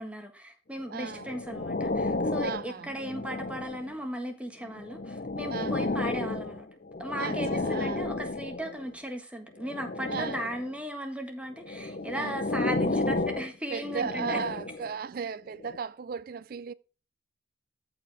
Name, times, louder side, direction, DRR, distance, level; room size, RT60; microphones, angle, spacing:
voice 1, 0.0-6.7 7.0-14.4, equal, 5° right, 1.6 m, -37 dB
sound 1, 0.9-4.0 4.6-8.9 9.6-10.7 11.6-14.9 15.6-15.8, left 2 dB, 45° left, 0.8 m, -32 dB
voice 2, 0.9-1.3 2.4-2.9 5.5-6.0 7.2-8.0 10.1-10.5 12.1-12.4 13.7-16.7, right 6 dB, 50° right, 0.3 m, -36 dB
14.0 x 5.0 x 3.5 m
head